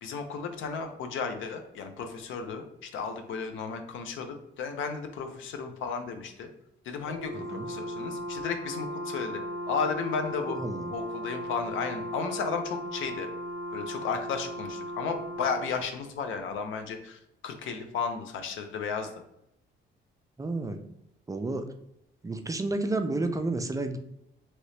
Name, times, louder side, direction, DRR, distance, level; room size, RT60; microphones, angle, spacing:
voice 1, 0.0-6.5 6.8-9.4 9.7-10.6 10.9-13.3 13.7-19.1, left 5 dB, 75° left, 6 dB, 0.6 m, -34 dB
Brass instrument, 7.0-15.8, equal, 45° left, 1.4 m, -37 dB
voice 2, 7.3-7.7 10.4-10.9 20.4-20.8 21.3-21.7 22.2-24.0, right 2 dB, 15° right, 6 dB, 0.3 m, -31 dB
3.0 x 2.7 x 3.1 m, 0.81 s
cardioid pair, 90°, 20 cm